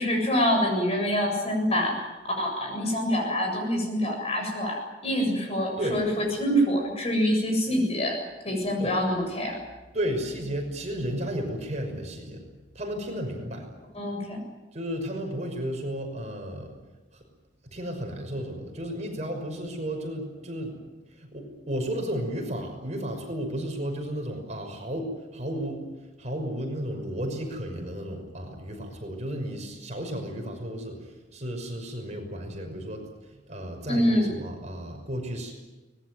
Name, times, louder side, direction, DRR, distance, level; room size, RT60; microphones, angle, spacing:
voice 1, 0.0-8.2 8.4-9.6 13.9-14.4 33.9-34.3, equal, 35° left, 3 dB, 7.6 m, -26 dB
voice 2, 9.9-12.4 12.7-13.7 14.7-16.8 17.1-17.2 17.6-20.8 21.1-25.8 26.2-35.5, equal, 40° right, 3 dB, 5.9 m, -33 dB
24.0 x 20.5 x 9.3 m, 1.1 s
head